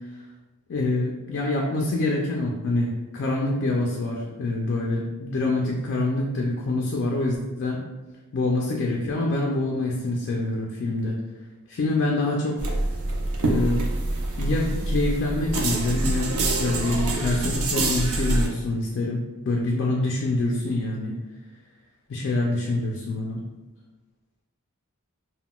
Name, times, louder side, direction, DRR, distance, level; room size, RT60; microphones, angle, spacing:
voice 1, 0.7-7.8 8.3-11.2 11.7-12.6 13.4-13.8 14.4-16.3 16.6-21.2 22.1-23.4, left 2 dB, 50° left, -1 dB, 0.3 m, -26 dB
sound 1, 12.6-18.5, right 2 dB, 70° right, 0.5 m, -25 dB
3.7 x 2.1 x 2.2 m, 1.2 s
head